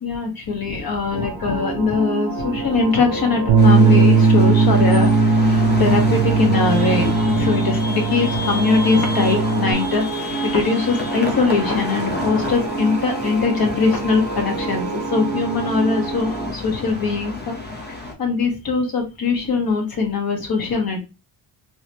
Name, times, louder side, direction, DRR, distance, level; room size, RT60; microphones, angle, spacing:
voice 1, 0.0-10.0 10.4-17.5 18.2-21.0, left 4 dB, 45° left, 2 dB, 1.5 m, -21 dB
sound 1, 1.1-16.5, right 4 dB, 40° right, 1.3 m, -28 dB
Bass guitar, 3.5-9.7, right 3 dB, 55° right, 0.6 m, -17 dB
sound 2, 3.6-18.1, left 2 dB, 20° left, 1.0 m, -30 dB
3.2 x 3.1 x 2.9 m, 0.27 s
cardioid pair, 105°, 48 cm